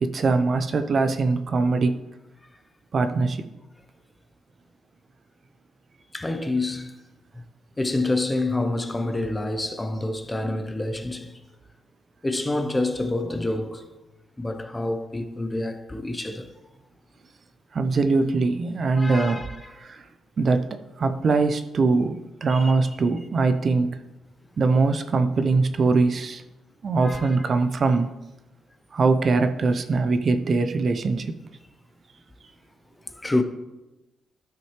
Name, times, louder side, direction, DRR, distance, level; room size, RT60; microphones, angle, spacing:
voice 1, 0.0-2.0 2.9-3.4 17.7-19.4 19.8-20.0 20.4-23.9 24.6-26.4 26.8-28.1 28.9-31.3, right 3 dB, 45° right, 0.5 m, -22 dB
voice 2, 6.1-6.9 7.8-11.4 12.2-14.0 14.4-16.5 18.9-19.9 22.5-22.7 27.0-27.4 33.1-33.4, left 2 dB, 15° left, 0.7 m, -28 dB
12.0 x 5.8 x 3.3 m
cardioid pair, 120°, 0 cm